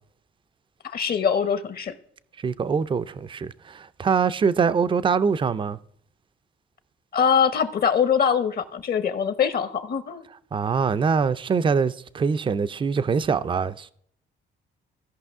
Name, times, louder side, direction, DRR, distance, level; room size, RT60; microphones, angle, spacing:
voice 1, 0.8-2.0 7.1-10.2, left 7 dB, 50° left, 0.9 m, -23 dB
voice 2, 2.4-5.8 10.5-13.9, right 5 dB, 25° right, 0.4 m, -23 dB
16.0 x 5.4 x 3.6 m
cardioid pair, 90°, 20 cm